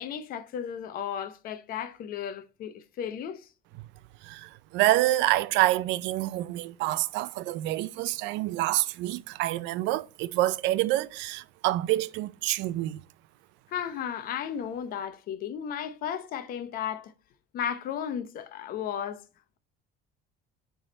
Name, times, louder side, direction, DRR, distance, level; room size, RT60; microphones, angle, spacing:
voice 1, 0.0-3.5 13.7-17.1 17.5-19.2, left 8 dB, 50° left, 0.7 m, -34 dB
voice 2, 4.2-13.0, right 16 dB, 75° right, 0.4 m, -27 dB
9.8 x 3.6 x 4.1 m
cardioid pair, 160°, 19 cm